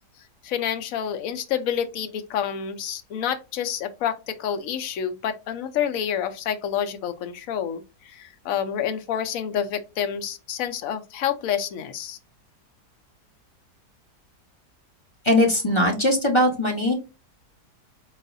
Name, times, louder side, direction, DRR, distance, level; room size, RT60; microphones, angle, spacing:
voice 1, 0.4-12.2, left 9 dB, 65° left, 1.0 m, -28 dB
voice 2, 15.2-16.9, left 1 dB, 20° left, 1.2 m, -20 dB
4.5 x 4.0 x 2.6 m
omnidirectional pair, 1.8 m